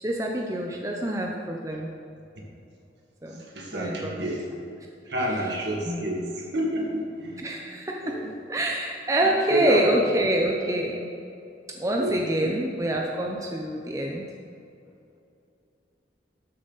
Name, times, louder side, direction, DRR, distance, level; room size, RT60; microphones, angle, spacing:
voice 1, 0.0-1.9 3.2-3.4 3.7-4.3 5.8-6.3 7.4-8.2 8.5-11.1 11.7-14.3, right 1 dB, 15° right, 0 dB, 0.7 m, -26 dB
voice 2, 3.5-4.4 5.1-7.5 8.0-8.3 9.5-9.8 12.0-12.5, right 1 dB, 65° right, -2 dB, 2.0 m, -29 dB
12.5 x 7.3 x 4.1 m, 2.6 s
head